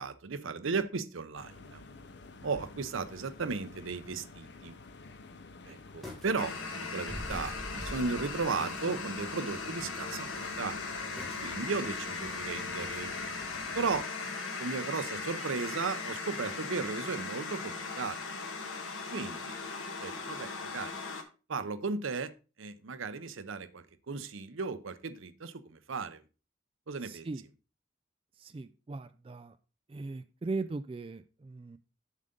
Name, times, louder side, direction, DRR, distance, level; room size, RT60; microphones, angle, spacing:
voice 1, 0.0-1.8 2.4-4.8 5.7-10.8 11.4-13.2 13.7-18.2 19.1-19.6 20.0-21.0 21.5-22.3 22.6-26.2 26.9-27.3, right 4 dB, 85° right, 12 dB, 0.7 m, -36 dB
sound 1, 1.3-14.0, left 3 dB, 55° left, 0.6 m, -50 dB
sound 2, 6.0-6.4 6.6-6.7 7.1-8.8 9.2-9.3 9.8-10.1 10.3-10.6 11.2-11.7 12.8-13.1 13.5-13.6, equal, ahead, 1.9 m, -44 dB
sound 3, 6.4-21.2, left 4 dB, 80° left, 1.3 m, -38 dB
voice 2, 27.0-27.4 28.4-29.6 29.9-31.8, right 3 dB, 25° right, 10 dB, 0.3 m, -39 dB
7.3 x 6.6 x 3.8 m, 0.33 s
head